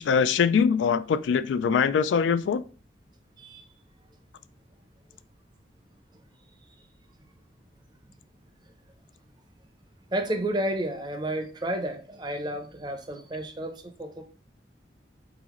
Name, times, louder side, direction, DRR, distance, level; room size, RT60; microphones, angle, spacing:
voice 1, 0.0-2.6, left 6 dB, 90° left, 0.3 m, -23 dB
voice 2, 10.1-14.2, right 1 dB, 25° right, 0.6 m, -31 dB
4.0 x 3.8 x 3.0 m
head